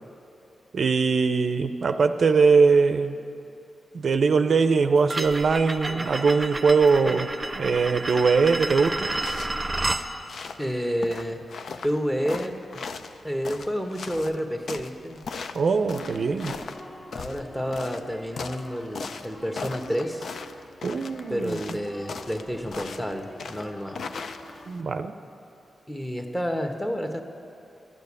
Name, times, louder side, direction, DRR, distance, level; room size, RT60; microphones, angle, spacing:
voice 1, 0.7-3.2 3.9-7.3 7.5-9.1 15.5-16.6 20.8-21.6 24.7-25.1, right 5 dB, 65° right, 9 dB, 0.5 m, -21 dB
sound 1, 5.1-10.1, right 2 dB, 25° right, 0.6 m, -30 dB
sound 2, 9.0-24.8, left 5 dB, 70° left, 0.5 m, -39 dB
voice 2, 10.6-11.4 11.8-12.6 13.2-15.2 17.1-20.3 21.3-24.0 25.9-27.2, equal, 10° left, 4 dB, 1.1 m, -29 dB
sound 3, 15.6-24.7, right 1 dB, 30° left, 1.4 m, -45 dB
12.0 x 6.8 x 9.6 m, 2.7 s
cardioid pair, 65°, 0 cm